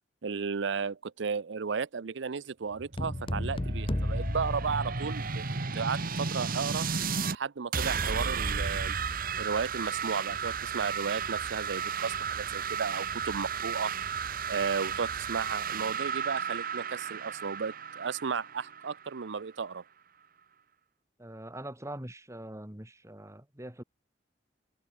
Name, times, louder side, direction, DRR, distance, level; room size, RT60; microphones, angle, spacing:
voice 1, 0.2-5.5 5.7-6.9 7.3-9.0 9.4-13.9 14.5-19.8, right 5 dB, 70° right, 0.6 m, -34 dB
sound 1, 2.7-7.4 7.7-19.3, right 5 dB, 50° right, 1.3 m, -34 dB
sound 2, 3.0-5.5, left 1 dB, 30° left, 1.0 m, -34 dB
voice 2, 21.2-23.8, right 1 dB, 15° right, 3.1 m, -43 dB
head